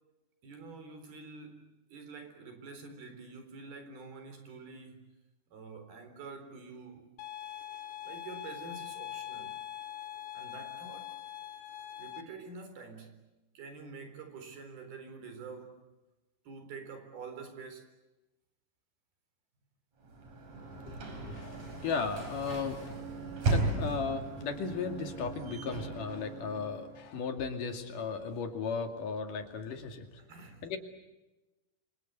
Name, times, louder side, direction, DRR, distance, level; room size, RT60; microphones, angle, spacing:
voice 1, 0.4-5.1 5.5-7.1 8.0-9.6 10.3-11.2 12.0-13.2 13.5-15.8 16.5-18.0 30.2-30.7, right 4 dB, 85° right, 5.9 m, -47 dB
sound 1, 7.2-12.2, left 12 dB, 90° left, 3.1 m, -43 dB
Sliding door / Slam, 20.0-27.0, right 2 dB, 45° right, 5.3 m, -36 dB
voice 2, 20.5-23.0 23.4-30.2 30.6-30.8, left 5 dB, 60° left, 3.8 m, -36 dB
29.0 x 25.0 x 8.0 m
omnidirectional pair, 4.3 m